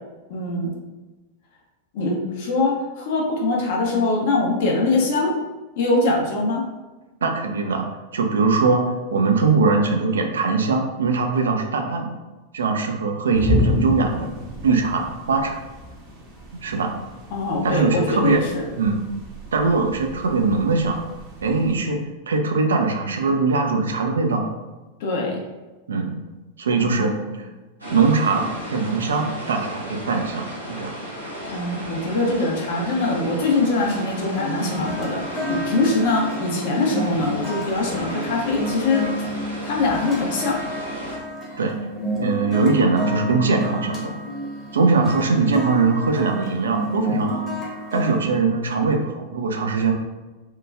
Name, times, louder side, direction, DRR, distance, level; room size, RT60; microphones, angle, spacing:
voice 1, 0.3-0.7 1.9-5.4 5.8-6.6 17.3-18.6 25.0-25.4 26.7-27.4 31.5-39.1 39.6-40.6, left 2 dB, 50° left, -1 dB, 0.5 m, -23 dB
voice 2, 7.2-8.8 9.1-12.1 12.5-14.3 14.6-15.6 16.6-16.9 17.6-18.4 18.8-19.0 19.5-21.0 21.4-22.0 22.3-24.5 25.9-26.2 26.6-27.1 27.9-30.9 41.6-41.7 42.2-44.2 44.7-47.4 47.9-49.9, right 4 dB, 65° right, 4 dB, 0.3 m, -21 dB
sound 1, 13.3-21.8, left 1 dB, 35° right, 0.7 m, -31 dB
sound 2, 27.8-41.2, equal, 85° right, 0.7 m, -34 dB
sound 3, 34.3-48.2, equal, 20° left, 0.8 m, -31 dB
3.0 x 2.2 x 2.3 m, 1.2 s
figure-of-eight pair, 90°, 0 cm